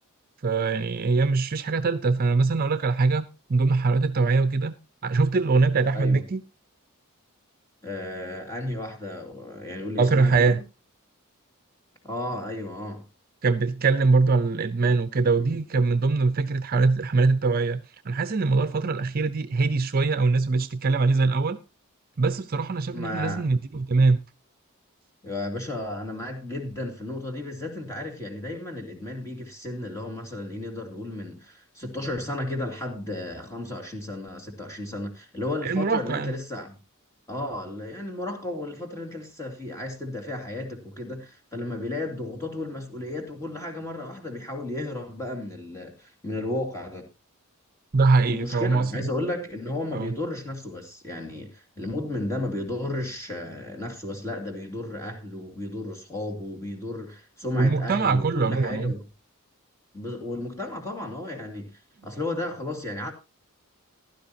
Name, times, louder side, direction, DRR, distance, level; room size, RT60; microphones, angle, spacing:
voice 1, 0.4-4.7 5.0-6.4 10.0-10.6 13.4-21.6 22.2-24.2 35.6-36.3 47.9-49.1 49.9-50.1 57.5-58.9, right 3 dB, 40° right, 0.6 m, -22 dB
voice 2, 7.8-10.6 12.0-13.0 15.4-15.6 22.9-23.5 25.2-36.8 37.3-47.1 48.3-59.0 59.9-61.7 62.0-63.1, left 1 dB, 15° left, 2.4 m, -33 dB
15.5 x 12.0 x 2.8 m
head